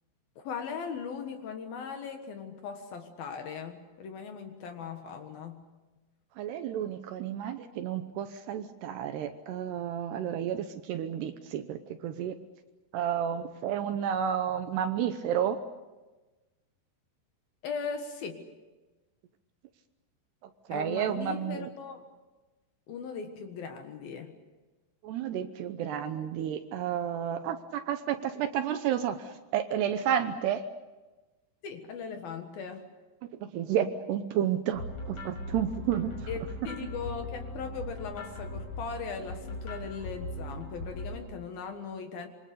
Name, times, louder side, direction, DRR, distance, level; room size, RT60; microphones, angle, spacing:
voice 1, 0.4-5.6 17.6-18.5 20.7-22.1 22.9-24.3 31.6-32.9 36.3-42.3, left 6 dB, 60° left, 6 dB, 2.9 m, -39 dB
voice 2, 6.4-12.4 12.9-15.6 20.7-21.7 25.0-30.6 33.2-36.1, right 9 dB, 75° right, 9 dB, 2.7 m, -31 dB
sound 1, 34.7-41.2, left 1 dB, 35° left, 7.4 m, -39 dB
27.0 x 24.0 x 6.8 m, 1.2 s
omnidirectional pair, 5.6 m